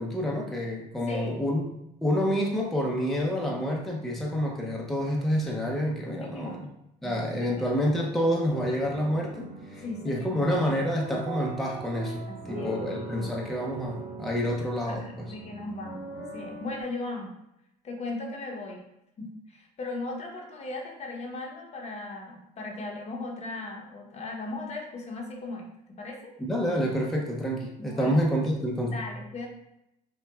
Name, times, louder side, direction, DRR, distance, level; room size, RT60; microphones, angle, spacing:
voice 1, 0.0-1.6 2.0-6.7 7.0-15.3 26.4-29.0, equal, ahead, -2 dB, 0.6 m, -28 dB
voice 2, 1.1-1.4 6.2-6.7 7.0-7.7 9.8-10.4 12.3-12.9 13.1-13.3 14.9-17.4 17.8-18.9 19.2-25.7 26.0-26.3 27.8-28.2 28.8-29.5, left 2 dB, 40° left, 1 dB, 0.8 m, -38 dB
sound 1, 8.5-16.8, right 2 dB, 80° right, 1.4 m, -41 dB
5.8 x 2.2 x 2.3 m, 0.85 s
cardioid pair, 110°, 17 cm